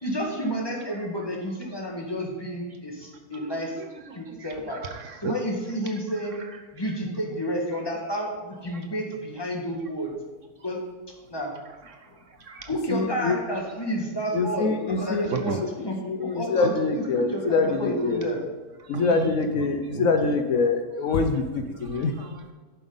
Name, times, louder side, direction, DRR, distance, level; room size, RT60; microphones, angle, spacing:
voice 1, 0.0-3.8 4.1-4.8 5.2-6.4 6.7-10.1 10.6-10.8 11.3-11.5 12.7-18.4, equal, 15° left, -1 dB, 1.6 m, -30 dB
voice 2, 4.1-5.3 12.4-12.7 15.3-15.6 16.6-16.7 17.1-17.2 18.9-19.3 19.6-20.1 21.2-21.3 21.7-22.5, right 6 dB, 65° right, 6 dB, 0.9 m, -35 dB
voice 3, 12.9-13.4 14.3-15.3 16.0-18.3 18.9-22.1, left 4 dB, 65° left, 6 dB, 1.1 m, -24 dB
10.0 x 7.6 x 3.9 m, 1.4 s
omnidirectional pair, 1.6 m